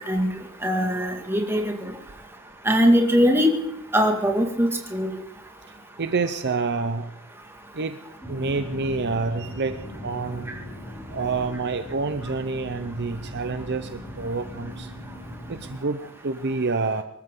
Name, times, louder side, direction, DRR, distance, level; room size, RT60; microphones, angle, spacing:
voice 1, 0.6-1.9 2.6-3.5 3.9-5.1, equal, 10° right, 2 dB, 2.2 m, -21 dB
voice 2, 6.0-7.1 7.7-8.0 8.3-9.7 10.0-10.5 11.1-14.9 15.5-17.0, right 4 dB, 50° right, 9 dB, 0.8 m, -27 dB
sound 1, 8.2-15.7, equal, 15° left, 5.7 m, -39 dB
24.0 x 14.0 x 3.9 m, 0.80 s
head